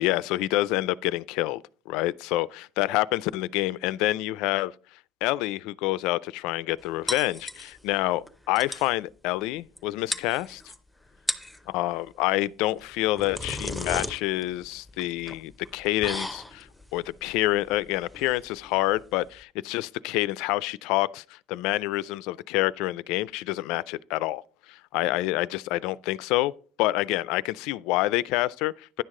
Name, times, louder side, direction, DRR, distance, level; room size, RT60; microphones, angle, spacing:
voice 1, 0.0-4.7 5.2-10.6 11.7-16.7 16.9-24.4 24.7-26.5 26.8-29.0, left 17 dB, 75° left, 0.3 m, -27 dB
sound 1, 7.1-8.0 8.3-8.4 8.6-8.9 9.8-9.9 10.1-10.8 11.1-11.6 12.8-19.4, left 1 dB, ahead, 0.6 m, -35 dB
10.0 x 6.4 x 3.7 m
cardioid pair, 140°, 0 cm